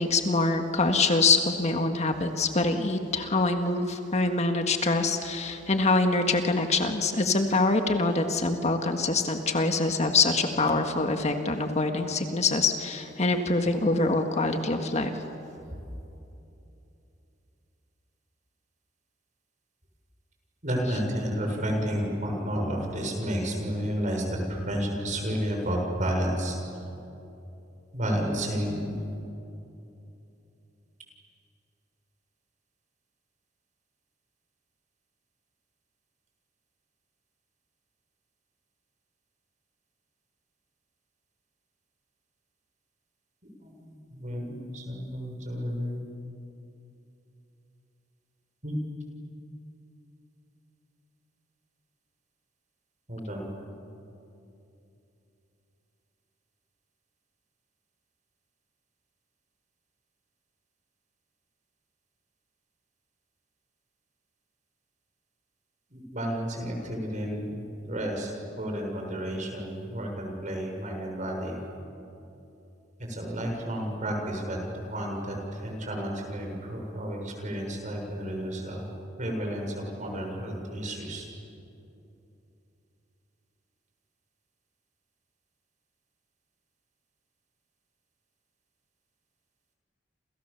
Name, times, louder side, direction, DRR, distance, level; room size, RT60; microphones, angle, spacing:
voice 1, 0.0-15.1, left 3 dB, 35° left, 5 dB, 1.7 m, -25 dB
voice 2, 20.6-26.6 27.9-29.1 43.6-45.9 48.6-48.7 53.1-53.5 65.9-71.6 73.0-78.9 79.2-81.3, equal, 40° right, 1 dB, 6.8 m, -31 dB
29.5 x 28.5 x 7.1 m, 2.8 s
head